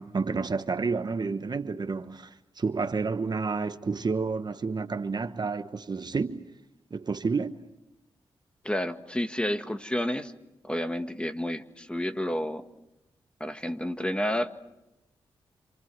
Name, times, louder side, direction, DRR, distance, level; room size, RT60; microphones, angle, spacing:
voice 1, 0.0-6.4 6.9-7.7, right 4 dB, 45° right, 1.1 m, -30 dB
voice 2, 8.6-10.3 10.6-12.6 13.4-14.5, left 1 dB, 10° left, 1.9 m, -30 dB
28.5 x 27.5 x 6.3 m
cardioid pair, 50°, 10 cm